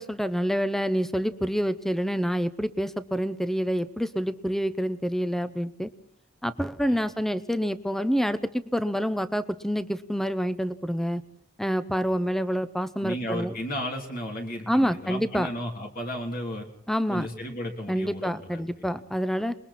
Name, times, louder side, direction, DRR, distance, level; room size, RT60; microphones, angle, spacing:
voice 1, 0.0-5.9 6.4-11.2 11.6-13.5 14.7-15.5 16.9-17.3 17.9-19.6, equal, ahead, 13 dB, 0.8 m, -27 dB
voice 2, 13.0-16.7 17.1-19.0, equal, 50° left, 1 dB, 3.2 m, -34 dB
29.0 x 21.5 x 4.3 m, 0.69 s
head